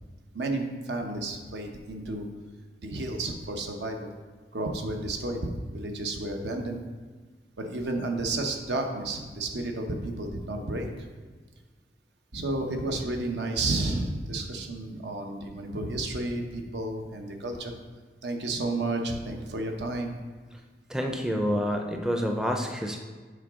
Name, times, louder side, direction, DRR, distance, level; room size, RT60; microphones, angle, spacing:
voice 1, 0.3-2.3 2.8-4.1 4.5-5.4 5.7-6.8 7.6-10.9 12.3-17.7 18.2-20.1, right 2 dB, 80° right, 3 dB, 0.8 m, -31 dB
voice 2, 20.9-23.0, equal, 5° right, 2 dB, 0.4 m, -28 dB
8.0 x 4.8 x 3.6 m, 1.4 s
head